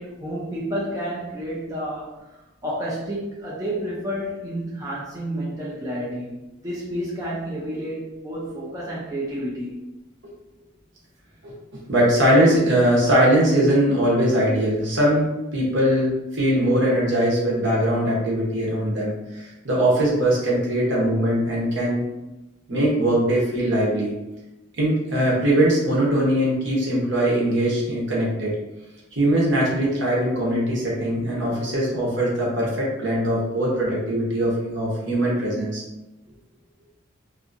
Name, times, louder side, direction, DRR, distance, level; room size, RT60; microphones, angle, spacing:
voice 1, 0.0-2.1 2.6-9.9, equal, 15° right, -7 dB, 0.5 m, -30 dB
voice 2, 11.9-22.0 22.7-24.1 24.8-28.5 29.1-35.8, right 1 dB, 60° right, -4 dB, 0.9 m, -21 dB
2.7 x 2.5 x 2.5 m, 0.99 s
head